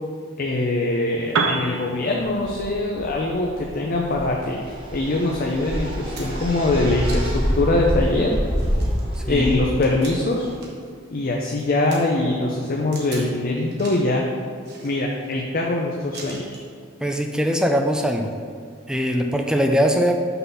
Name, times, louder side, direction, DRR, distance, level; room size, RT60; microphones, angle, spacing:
voice 1, 0.4-8.3 9.3-10.5 11.1-14.3 14.8-16.6, left 2 dB, 45° left, 0 dB, 0.6 m, -23 dB
Piano, 1.2-9.0, right 4 dB, 80° right, 0.7 m, -33 dB
sound 1, 2.4-10.5, equal, 25° right, 1.6 m, -27 dB
sound 2, 5.3-5.4 5.9-6.5 7.1-7.6 8.0-8.1 8.5-10.9 11.2-12.0 12.9-13.3 13.7-14.1 14.6-15.3 16.1-16.7 17.8-17.9, right 3 dB, 55° right, 1.2 m, -41 dB
voice 2, 9.2-9.5 17.0-18.3 18.9-20.1, equal, 5° right, 3 dB, 0.4 m, -21 dB
5.6 x 4.0 x 5.6 m, 2.1 s
head